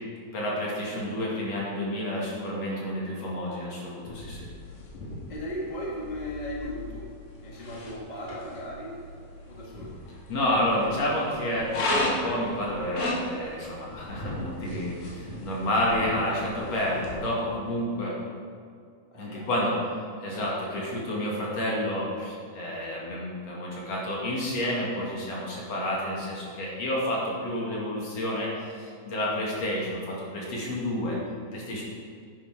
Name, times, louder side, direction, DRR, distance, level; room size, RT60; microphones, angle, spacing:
voice 1, 0.3-4.5 9.7-9.9 10.3-18.1 19.1-19.8 20.2-31.2 31.5-31.8, left 1 dB, 55° left, -4 dB, 3.3 m, -30 dB
sound 1, 4.1-17.1, left 1 dB, 85° left, 3.7 m, -36 dB
voice 2, 5.3-7.1 7.4-9.0 9.4-10.0 19.1-19.8, equal, 20° left, -4 dB, 1.2 m, -37 dB
10.5 x 10.5 x 5.1 m, 2.3 s
omnidirectional pair, 3.9 m